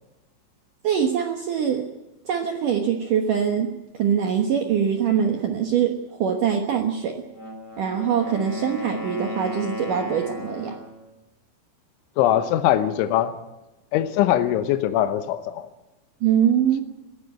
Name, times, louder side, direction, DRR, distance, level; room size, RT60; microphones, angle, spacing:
voice 1, 0.8-1.9 2.3-7.2 7.8-10.8 16.2-16.8, right 8 dB, 70° right, 4 dB, 2.0 m, -23 dB
Wind instrument woodwind instrument, 7.2-11.0, left 3 dB, 5° right, 4.4 m, -35 dB
voice 2, 12.2-13.4 13.9-15.7, left 12 dB, 80° left, 9 dB, 3.3 m, -21 dB
20.5 x 15.5 x 9.2 m, 1.0 s
omnidirectional pair, 5.6 m